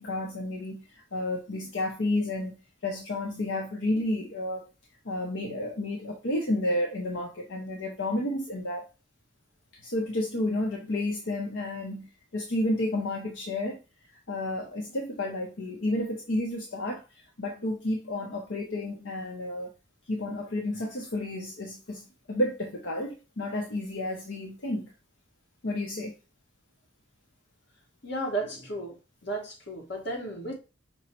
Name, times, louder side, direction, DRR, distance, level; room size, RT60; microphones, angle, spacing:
voice 1, 0.0-4.7 5.0-8.8 9.8-13.8 14.3-17.0 17.4-19.7 20.1-24.9 25.6-26.1, left 1 dB, 80° left, 0.8 m, -31 dB
voice 2, 28.0-28.9 29.2-30.6, right 2 dB, 65° left, 1.4 m, -33 dB
5.4 x 2.1 x 4.3 m
head